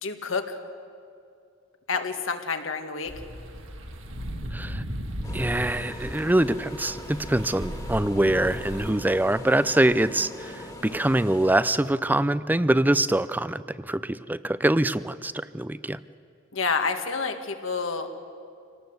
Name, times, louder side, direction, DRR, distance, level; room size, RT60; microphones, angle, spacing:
voice 1, 0.0-0.6 1.9-3.1 16.5-18.1, left 4 dB, 75° left, 6 dB, 1.9 m, -28 dB
sound 1, 3.1-8.9, equal, 75° right, 2.1 m, -36 dB
voice 2, 4.5-4.8 5.3-16.0, right 1 dB, 10° right, 15 dB, 0.5 m, -24 dB
sound 2, 5.2-11.5, left 1 dB, 20° left, 2.0 m, -41 dB
27.0 x 18.5 x 8.0 m, 2.4 s
head